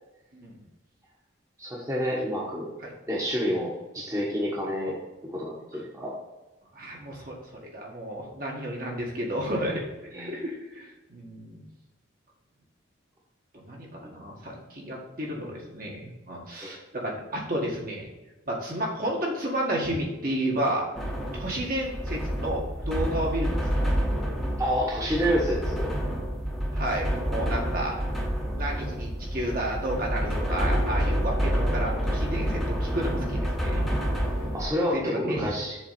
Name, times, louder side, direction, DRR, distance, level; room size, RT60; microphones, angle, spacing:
voice 1, 1.6-2.7 3.1-4.9 5.3-6.1 10.1-10.4 14.0-14.1 16.6-16.7 24.6-25.9 34.5-35.8, equal, 15° right, -5 dB, 1.3 m, -28 dB
voice 2, 6.7-7.4 7.6-9.9 10.1-11.6 13.5-18.1 18.5-20.9 21.3-23.7 26.7-28.0 28.6-33.8 34.9-35.5, right 1 dB, 45° right, -2 dB, 1.8 m, -31 dB
sound 1, 21.0-34.7, equal, ahead, 1.0 m, -28 dB
7.2 x 4.0 x 5.8 m, 1.1 s
head